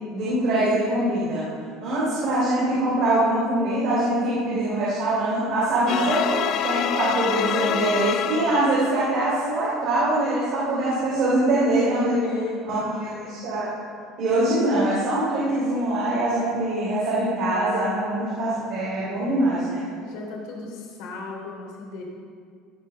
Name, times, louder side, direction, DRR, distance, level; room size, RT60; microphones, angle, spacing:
voice 1, 0.1-1.5 1.8-12.2 13.3-13.7 14.2-19.8, right 1 dB, 45° right, -8 dB, 3.0 m, -23 dB
sound 1, 5.9-9.1, left 10 dB, 40° left, 0.3 m, -27 dB
voice 2, 12.1-13.5 19.0-19.6 20.0-22.0, left 3 dB, 70° left, -1 dB, 2.9 m, -36 dB
15.5 x 5.4 x 6.2 m, 2.1 s
cardioid pair, 175°, 0 cm